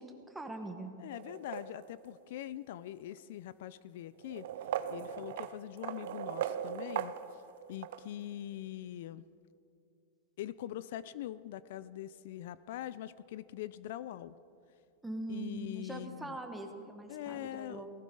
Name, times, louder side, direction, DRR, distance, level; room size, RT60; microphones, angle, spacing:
voice 1, 0.0-0.9 15.0-17.9, right 2 dB, 5° right, 4 dB, 1.3 m, -42 dB
voice 2, 1.0-4.5 4.9-7.4 7.7-9.2 10.4-14.4 15.3-16.4 17.1-17.8, left 12 dB, 70° left, 17 dB, 0.4 m, -43 dB
sound 1, 1.1-2.1 3.1-3.2 4.2-8.0, right 10 dB, 70° right, 0.6 m, -39 dB
18.5 x 16.0 x 3.8 m, 2.5 s
supercardioid pair, 145°, 0 cm